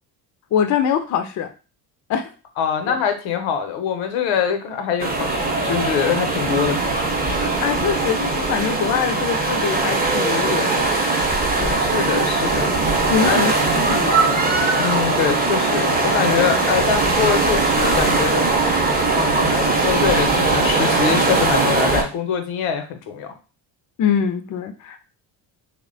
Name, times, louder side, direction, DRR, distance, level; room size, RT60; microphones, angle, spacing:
voice 1, 0.5-1.5 2.1-2.3 2.9-3.0 7.6-10.9 11.6-11.8 13.1-14.8 24.0-25.1, left 7 dB, 40° left, 7 dB, 0.4 m, -24 dB
voice 2, 2.6-7.1 11.8-12.7 13.3-13.5 14.7-18.4 19.2-23.3, left 7 dB, 80° left, 7 dB, 0.7 m, -24 dB
sound 1, 5.0-22.0, right 3 dB, 20° right, 0.7 m, -20 dB
2.9 x 2.1 x 2.6 m, 0.33 s
supercardioid pair, 65°, 48 cm